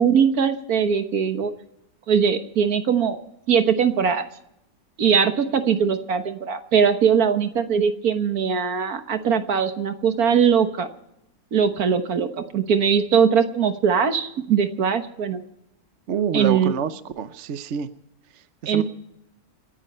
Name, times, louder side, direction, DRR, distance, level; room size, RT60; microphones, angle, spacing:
voice 1, 0.0-1.5 2.1-3.2 3.5-4.3 5.0-10.9 11.5-15.4 16.3-16.7 18.7-18.8, right 7 dB, 75° right, 8 dB, 1.7 m, -21 dB
voice 2, 16.1-17.9 18.6-18.8, right 7 dB, 55° right, 11 dB, 1.0 m, -27 dB
29.0 x 10.0 x 4.3 m, 0.82 s
omnidirectional pair, 1.6 m